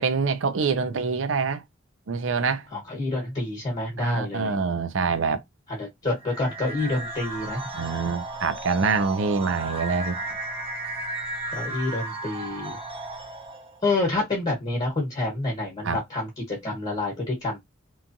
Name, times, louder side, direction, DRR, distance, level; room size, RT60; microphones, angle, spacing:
voice 1, 0.0-1.6 2.1-2.7 4.0-5.4 7.7-10.2 15.8-16.0, right 5 dB, 70° right, 0.5 m, -25 dB
voice 2, 2.7-4.5 5.7-7.7 11.5-12.8 13.8-17.6, left 2 dB, 30° left, 1.2 m, -28 dB
sound 1, 6.2-13.8, right 2 dB, 30° right, 0.8 m, -34 dB
3.0 x 2.3 x 2.6 m
head